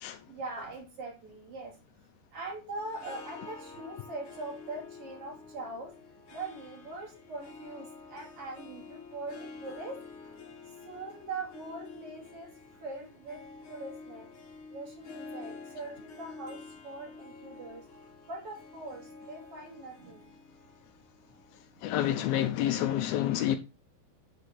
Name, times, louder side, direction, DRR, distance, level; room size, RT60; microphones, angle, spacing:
voice 1, 0.3-1.7 2.3-5.9 6.3-10.3 10.8-13.4 13.7-14.3 14.7-20.3 21.7-21.8, right 2 dB, 40° right, 3.2 m, -42 dB
Harp, 2.8-22.1, left 4 dB, 50° left, 1.8 m, -49 dB
voice 2, 21.8-23.6, left 12 dB, 85° left, 2.5 m, -28 dB
7.7 x 4.9 x 4.1 m
omnidirectional pair, 4.3 m